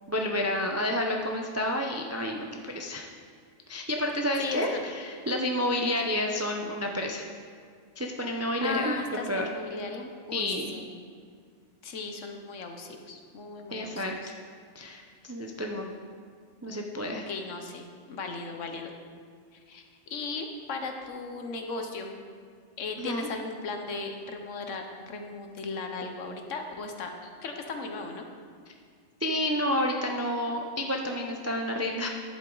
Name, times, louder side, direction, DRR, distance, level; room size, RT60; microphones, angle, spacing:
voice 1, 0.1-3.1 3.7-7.2 8.0-9.0 9.3-9.5 10.3-10.7 13.7-14.1 14.7-15.9 16.6-17.3 23.0-23.3 29.2-32.1, left 1 dB, 25° right, 1 dB, 0.3 m, -30 dB
voice 2, 4.4-4.9 8.6-10.9 11.8-14.0 17.1-18.9 19.5-19.8 20.1-22.2 22.8-28.3, left 3 dB, 70° left, 4 dB, 1.2 m, -36 dB
11.0 x 7.9 x 3.9 m, 2.1 s
omnidirectional pair, 1.4 m